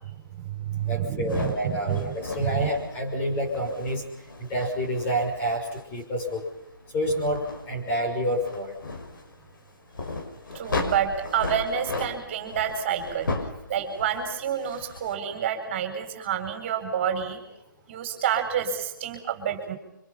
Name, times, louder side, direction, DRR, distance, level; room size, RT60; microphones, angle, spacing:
voice 1, 0.3-2.7 10.5-13.3 13.7-17.4 17.9-19.8, right 9 dB, 35° right, 6 dB, 4.3 m, -28 dB
voice 2, 0.9-4.0 4.5-6.4 6.9-8.8, equal, 15° left, 1 dB, 5.9 m, -28 dB
sound 1, 1.3-15.1, left 3 dB, 70° left, 5.9 m, -37 dB
26.5 x 25.5 x 5.7 m, 0.85 s
hypercardioid pair, 150°, 11 cm